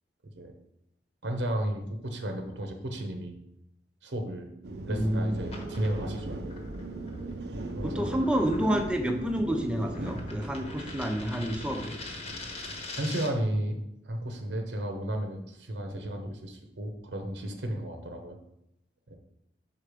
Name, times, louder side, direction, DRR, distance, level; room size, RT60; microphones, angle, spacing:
voice 1, 1.2-3.3 4.0-4.5 4.9-6.6 7.7-8.2 12.9-13.8 14.0-18.4 19.1-19.2, right 1 dB, 85° right, 4 dB, 0.9 m, -33 dB
sound 1, 4.6-12.8, right 1 dB, 65° right, 0.6 m, -38 dB
voice 2, 4.9-5.4 7.8-12.0, equal, 5° right, 3 dB, 0.6 m, -29 dB
sound 2, 5.4-13.5, left 3 dB, 35° left, 1.1 m, -44 dB
5.7 x 4.9 x 4.9 m, 0.81 s
head